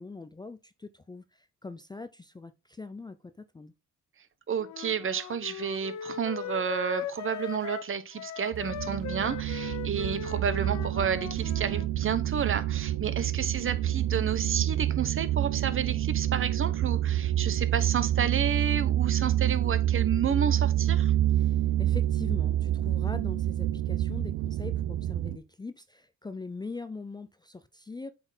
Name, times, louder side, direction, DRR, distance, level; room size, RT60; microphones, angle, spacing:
voice 1, 0.0-3.7 21.3-28.1, left 3 dB, 15° left, 0.4 m, -42 dB
voice 2, 4.5-21.1, right 7 dB, 45° right, 0.9 m, -31 dB
Wind instrument woodwind instrument, 4.6-11.9, left 10 dB, 70° left, 0.6 m, -39 dB
sound 1, 8.5-25.4, right 12 dB, 75° right, 0.5 m, -28 dB
7.8 x 4.2 x 3.9 m
cardioid pair, 90°, 30 cm